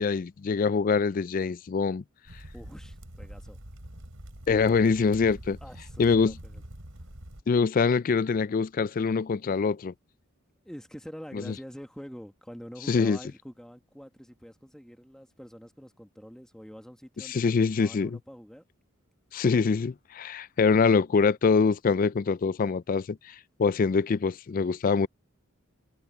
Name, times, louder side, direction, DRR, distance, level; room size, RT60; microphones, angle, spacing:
voice 1, 0.0-2.0 4.5-5.6 6.0-6.3 7.5-9.9 11.3-11.5 12.9-13.2 17.2-18.2 19.3-23.3 23.6-25.1, left 5 dB, 40° left, 0.3 m, -24 dB
sound 1, 2.3-7.4, right 1 dB, 80° right, 3.9 m, -45 dB
voice 2, 2.5-3.6 5.6-6.6 10.6-18.6, equal, 5° left, 1.6 m, -46 dB
head